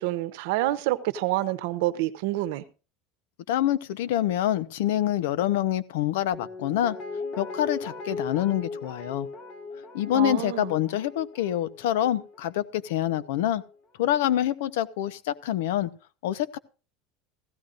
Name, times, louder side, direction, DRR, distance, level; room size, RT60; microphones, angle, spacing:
voice 1, 0.0-2.6 10.1-10.7, right 16 dB, 65° right, 0.9 m, -27 dB
voice 2, 3.5-7.0 7.4-9.3 9.9-13.6 14.0-15.9 16.2-16.6, left 12 dB, 85° left, 0.8 m, -26 dB
Guitar, 6.3-13.3 13.7-13.8, left 4 dB, 30° left, 1.6 m, -39 dB
16.0 x 14.5 x 2.6 m
cardioid pair, 175°, 0 cm